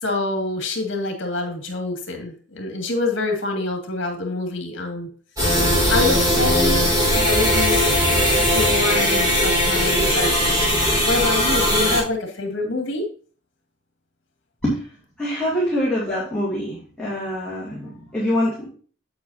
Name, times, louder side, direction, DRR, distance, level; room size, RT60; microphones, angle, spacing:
voice 1, 0.0-5.1 5.9-7.8 8.5-13.1, left 2 dB, 65° left, 2 dB, 2.2 m, -26 dB
sound 1, 5.4-12.0, equal, 20° right, 4.4 m, -19 dB
voice 2, 15.2-18.7, equal, 5° left, -8 dB, 2.7 m, -24 dB
8.6 x 8.0 x 2.8 m, 0.41 s
head